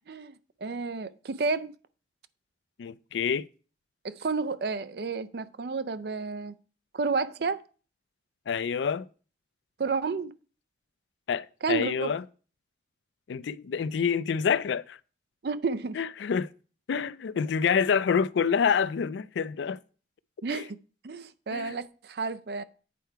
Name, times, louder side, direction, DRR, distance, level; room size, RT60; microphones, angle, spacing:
voice 1, 0.6-1.7 4.0-6.5 6.9-7.6 9.8-10.3 11.6-12.1 15.4-16.0 20.4-20.8 21.0-22.6, right 4 dB, 60° right, 0.4 m, -31 dB
voice 2, 2.8-3.5 8.5-9.1 11.3-12.2 13.3-15.0 16.0-16.5 16.9-19.8 20.5-20.6 21.5-21.7, left 6 dB, 75° left, 0.4 m, -27 dB
8.4 x 4.6 x 4.5 m
head